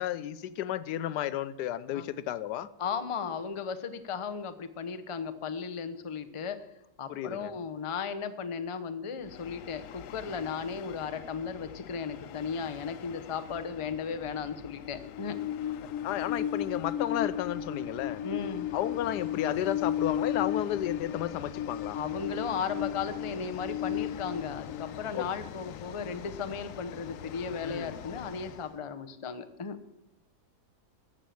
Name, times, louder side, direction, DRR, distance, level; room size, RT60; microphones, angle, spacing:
voice 1, 0.0-2.7 7.1-7.5 16.0-18.2 18.7-22.0 25.1-25.3 27.6-28.0, left 12 dB, 85° left, 16 dB, 1.2 m, -33 dB
voice 2, 2.8-6.6 7.0-15.4 18.2-18.7 21.9-29.8, left 6 dB, 30° left, 9 dB, 0.6 m, -36 dB
Train, 9.2-28.7, left 10 dB, 65° left, 0.9 m, -36 dB
14.0 x 7.4 x 7.7 m, 0.89 s
omnidirectional pair, 1.7 m